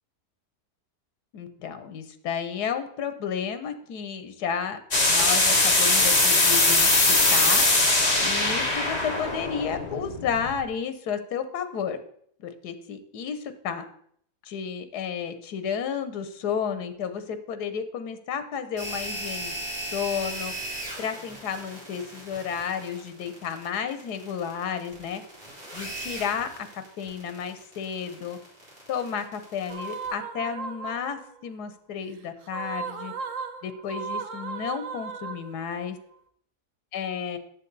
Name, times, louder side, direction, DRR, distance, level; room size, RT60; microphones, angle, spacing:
voice 1, 1.3-4.8 5.1-6.9 7.3-7.6 8.2-12.0 12.4-13.8 14.5-19.5 19.9-25.2 25.7-28.4 28.9-33.1 33.6-36.0 36.9-37.4, left 7 dB, 80° left, 10 dB, 1.4 m, -32 dB
sound 1, 4.9-10.6, left 2 dB, 25° left, 1.4 m, -21 dB
sound 2, 18.8-30.1, right 1 dB, 35° right, 3.3 m, -38 dB
sound 3, 29.7-31.4 32.4-35.8, right 5 dB, 60° right, 1.1 m, -36 dB
9.6 x 7.3 x 4.0 m, 0.65 s
omnidirectional pair, 1.7 m